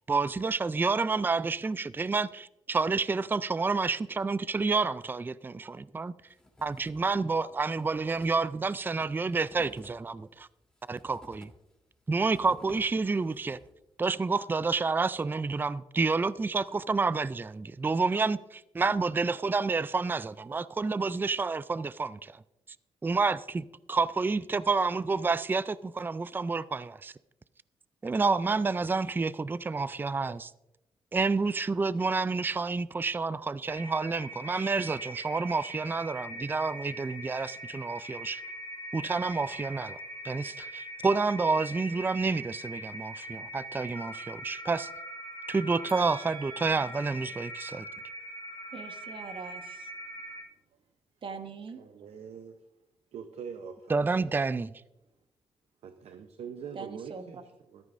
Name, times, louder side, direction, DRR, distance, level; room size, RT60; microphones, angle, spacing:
voice 1, 0.1-6.1 6.6-10.5 10.9-11.5 12.1-13.6 14.0-22.4 23.0-27.1 28.0-30.5 31.1-38.4 38.9-40.0 40.2-44.9 45.5-47.9 53.9-54.7, right 4 dB, 20° right, 0.4 m, -29 dB
sound 1, 6.3-7.2 7.5-7.6 7.8-13.8, left 1 dB, 10° left, 3.2 m, -54 dB
sound 2, 33.7-50.4, right 1 dB, 50° left, 3.0 m, -42 dB
voice 2, 45.9-46.8 48.7-49.9 51.2-51.8 56.7-57.4, right 5 dB, 55° right, 1.3 m, -43 dB
voice 3, 51.7-52.6 53.1-53.9 55.8-57.4, right 7 dB, 80° right, 0.8 m, -43 dB
14.0 x 13.0 x 2.6 m
cardioid pair, 75°, 11 cm